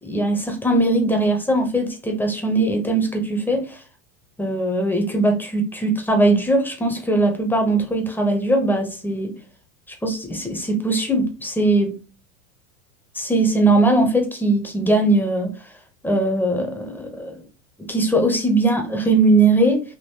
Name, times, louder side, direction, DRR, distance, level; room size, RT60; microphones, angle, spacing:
voice 1, 0.0-3.8 4.4-9.3 9.9-12.0 13.2-15.5 16.0-17.4 17.8-19.8, right 2 dB, 5° left, 0.6 m, -20 dB
3.6 x 2.5 x 2.7 m
hypercardioid pair, 110°, 42 cm